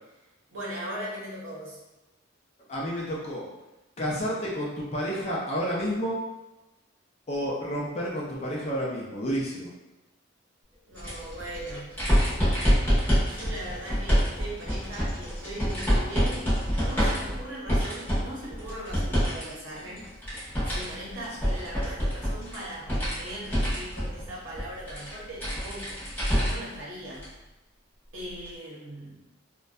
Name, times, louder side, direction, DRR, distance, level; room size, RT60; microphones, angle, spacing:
voice 1, 0.5-1.8 10.9-12.0 13.3-20.1 20.7-26.0 26.3-27.3 28.1-29.2, right 1 dB, 70° right, -5 dB, 0.8 m, -39 dB
voice 2, 2.7-3.5 4.0-6.2 7.3-9.7, equal, 30° left, -5 dB, 0.4 m, -30 dB
sound 1, 10.9-19.4 19.7-26.7 27.1-27.2 28.5-28.6, equal, 10° left, 0.8 m, -27 dB
2.5 x 2.1 x 2.2 m, 1.0 s
head